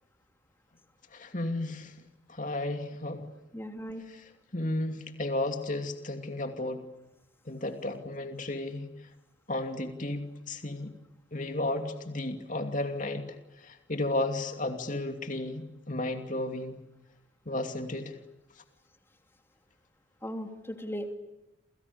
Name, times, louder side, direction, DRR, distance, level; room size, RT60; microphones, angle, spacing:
voice 1, 1.1-1.9 2.3-3.3 4.5-6.8 7.5-8.9 9.5-10.9 11.3-13.2 13.6-16.8 17.5-18.2, left 2 dB, 40° left, 5 dB, 2.7 m, -33 dB
voice 2, 3.5-4.0 20.2-21.1, equal, 10° left, 5 dB, 3.0 m, -37 dB
29.5 x 28.0 x 7.0 m, 0.95 s
head